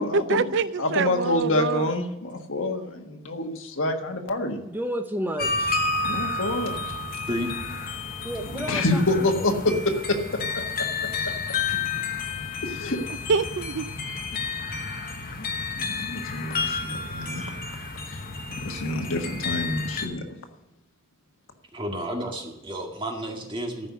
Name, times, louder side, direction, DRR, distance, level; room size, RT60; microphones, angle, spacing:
voice 1, 0.0-1.9 13.3-13.9, right 5 dB, 60° right, 0.4 m, -25 dB
voice 2, 0.8-4.6 6.0-6.7 8.5-11.3 12.6-13.0 15.7-17.5 18.1-18.2 18.6-20.2, left 2 dB, 75° left, 1.5 m, -27 dB
voice 3, 4.4-5.8 8.2-9.6, equal, 10° right, 0.9 m, -33 dB
sound 1, 5.4-20.1, left 4 dB, 45° left, 1.2 m, -31 dB
voice 4, 21.7-23.9, equal, 25° right, 2.0 m, -31 dB
14.0 x 5.4 x 9.4 m
head